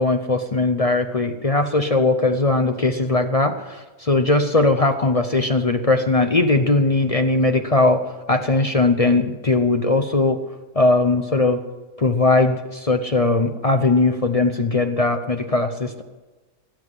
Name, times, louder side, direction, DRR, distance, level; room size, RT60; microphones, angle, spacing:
voice 1, 0.0-8.0 8.3-10.4 10.7-11.6 12.0-16.0, left 2 dB, 35° left, 7 dB, 0.6 m, -19 dB
17.5 x 7.9 x 8.0 m, 1.2 s
omnidirectional pair, 1.5 m